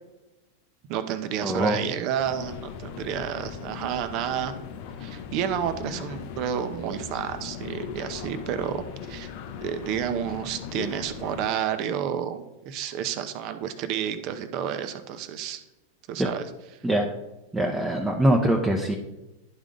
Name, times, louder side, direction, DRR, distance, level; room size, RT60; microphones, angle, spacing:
voice 1, 0.9-4.5 5.0-8.8 9.1-9.3 9.6-15.6 16.1-16.4, right 9 dB, 50° right, 10 dB, 0.7 m, -30 dB
voice 2, 1.4-1.8 16.2-16.3 16.8-17.1 17.5-18.9, right 1 dB, 10° right, 1 dB, 0.8 m, -23 dB
sound 1, 2.2-11.5, left 7 dB, 55° left, 0.6 m, -38 dB
11.0 x 3.6 x 3.8 m, 1.0 s
hypercardioid pair, 100°, 0 cm